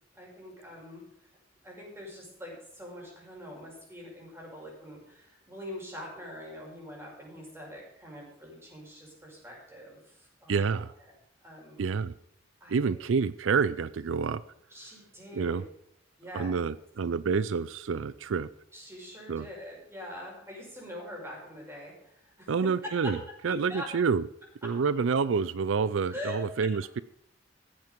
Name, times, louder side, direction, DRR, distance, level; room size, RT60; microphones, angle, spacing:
voice 1, 0.1-1.0 1.6-10.6 11.4-11.8 12.6-12.9 14.7-15.6 16.2-16.6 18.7-22.7 23.0-23.2 23.5-23.9 24.6-24.8 26.1-26.5, left 1 dB, 15° right, -2 dB, 5.7 m, -43 dB
voice 2, 10.5-10.9 11.8-12.1 12.7-14.4 15.3-15.6 16.3-18.5 19.3-19.5 22.5-23.2 23.4-24.2 24.6-27.0, right 5 dB, 85° right, 17 dB, 0.4 m, -28 dB
15.0 x 8.9 x 5.2 m, 0.76 s
head